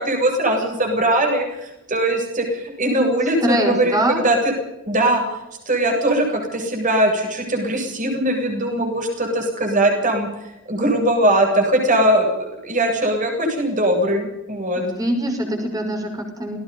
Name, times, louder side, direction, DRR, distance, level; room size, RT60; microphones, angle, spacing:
voice 1, 0.0-4.5 4.9-5.2 5.7-10.3 10.7-14.8, right 1 dB, 40° right, 3 dB, 8.0 m, -20 dB
voice 2, 3.4-4.2 14.7-16.6, right 1 dB, 15° right, 3 dB, 6.1 m, -23 dB
28.0 x 19.5 x 5.6 m, 0.94 s
head